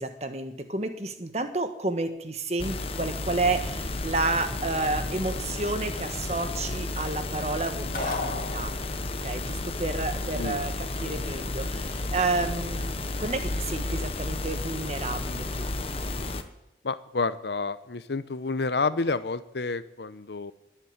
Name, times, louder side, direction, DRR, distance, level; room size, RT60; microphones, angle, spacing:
voice 1, 0.0-8.7 9.2-15.7, right 3 dB, 35° right, 8 dB, 1.3 m, -31 dB
sound 1, 2.6-16.4, left 2 dB, 35° left, 1.0 m, -32 dB
sound 2, 7.9-9.2, left 3 dB, 50° left, 2.4 m, -33 dB
voice 2, 16.8-20.5, left 3 dB, 70° left, 14 dB, 0.8 m, -29 dB
21.0 x 8.4 x 8.0 m, 0.88 s
head